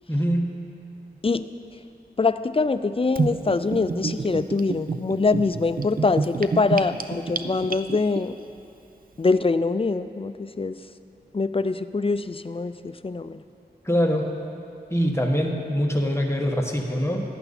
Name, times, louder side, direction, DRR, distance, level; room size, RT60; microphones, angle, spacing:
voice 1, 0.1-0.5 13.8-14.3 14.9-17.2, equal, 15° left, 1 dB, 1.4 m, -23 dB
voice 2, 2.2-8.4 9.2-10.8 11.3-13.4, left 3 dB, 30° left, 12 dB, 0.4 m, -24 dB
Gurgling / Bathtub (filling or washing), 3.2-8.2, right 4 dB, 55° right, 0.5 m, -28 dB
14.5 x 11.0 x 4.3 m, 2.7 s
wide cardioid pair, 55°, 17 cm